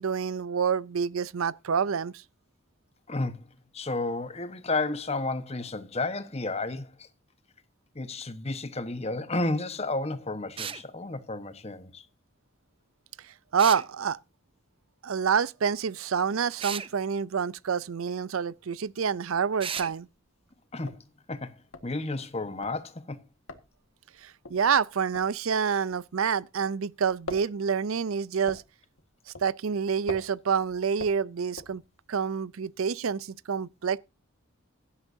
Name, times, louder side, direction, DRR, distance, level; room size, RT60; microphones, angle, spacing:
voice 1, 0.0-2.1 13.5-14.2 15.0-20.1 24.2-28.6 29.4-31.8 32.1-34.0, right 6 dB, 85° right, 0.5 m, -27 dB
voice 2, 3.1-7.1 7.9-12.0 20.7-23.2, left 2 dB, 30° left, 1.2 m, -32 dB
sound 1, 10.6-10.8 13.6-13.9 16.6-16.9 19.6-19.9, right 8 dB, 25° right, 0.5 m, -34 dB
sound 2, 18.5-18.9 19.2-19.3 19.6-26.7 26.9-32.3, left 2 dB, 85° left, 1.7 m, -44 dB
16.0 x 11.5 x 2.7 m
head